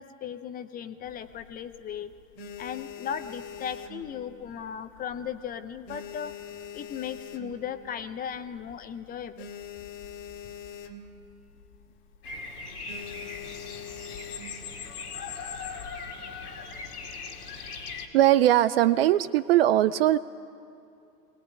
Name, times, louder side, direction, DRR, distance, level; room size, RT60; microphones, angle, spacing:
voice 1, 0.0-2.1 2.6-6.3 6.7-9.5, left 8 dB, 20° left, 11 dB, 0.7 m, -36 dB
sound 1, 1.1-1.8 2.2-4.7 5.0-5.3 5.6-7.9 8.3-8.4 8.6-8.7 9.1-11.3 11.6-11.8 12.1-12.4 12.9-14.7 15.4-16.0, left 7 dB, 50° left, 2.3 m, -42 dB
Bird vocalization bird call bird song, 12.2-18.1, left 5 dB, 75° left, 2.9 m, -39 dB
voice 2, 18.1-20.2, right 13 dB, 40° right, 15 dB, 0.5 m, -20 dB
21.0 x 19.0 x 9.5 m, 2.5 s
hypercardioid pair, 105°, 47 cm